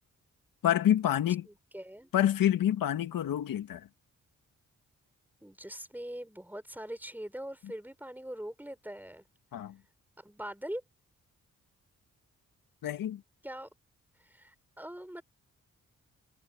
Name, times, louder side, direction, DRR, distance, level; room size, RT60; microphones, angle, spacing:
voice 1, 0.6-1.5 2.1-3.9 9.5-9.8 12.8-13.2, left 11 dB, 80° left, 2.0 m, -27 dB
voice 2, 1.4-2.1 5.4-9.2 10.2-10.8 13.4-13.7 14.2-15.2, right 1 dB, 5° right, 5.2 m, -42 dB
supercardioid pair, 50°, 34 cm